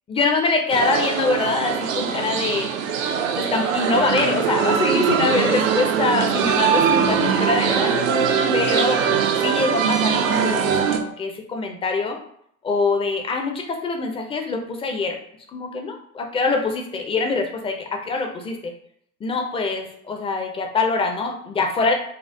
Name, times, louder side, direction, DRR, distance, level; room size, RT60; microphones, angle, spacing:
voice 1, 0.1-2.7 3.3-8.1 8.5-9.0 9.4-12.2 12.6-15.1 15.5-18.7 19.2-21.9, left 3 dB, 15° left, 3 dB, 0.5 m, -24 dB
sound 1, 0.7-11.0, right 7 dB, 65° right, 0.6 m, -21 dB
4.2 x 2.4 x 2.6 m, 0.67 s
figure-of-eight pair, 75°, 42 cm